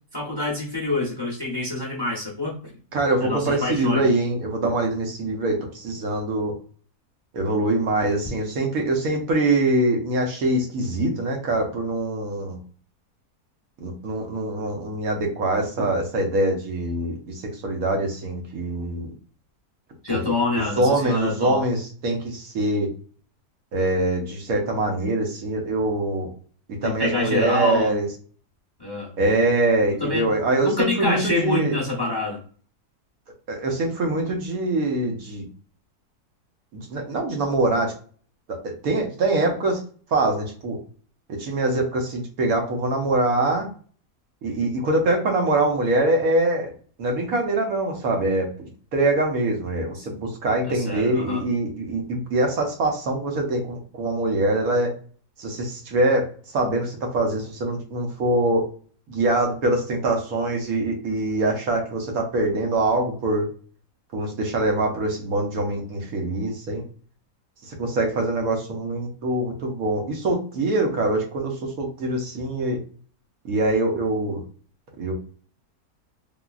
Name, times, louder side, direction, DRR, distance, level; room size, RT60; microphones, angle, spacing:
voice 1, 0.1-2.6 3.2-4.0 20.0-21.6 26.8-27.9 28.8-29.1 30.0-30.3 30.6-32.4 50.7-51.4, left 3 dB, 20° left, -3 dB, 0.7 m, -26 dB
voice 2, 2.9-6.5 7.3-12.6 13.8-19.1 20.1-20.2 20.5-22.9 23.7-26.3 26.8-28.1 29.2-31.7 33.5-35.5 36.7-37.9 38.6-39.8 40.1-40.8 41.4-43.7 44.4-54.9 55.4-56.3 56.5-58.7 59.1-63.5 64.1-66.8 67.7-72.8 73.4-74.4 75.0-75.1, right 2 dB, 70° right, 1 dB, 1.2 m, -24 dB
3.8 x 2.2 x 2.4 m, 0.41 s
omnidirectional pair, 1.6 m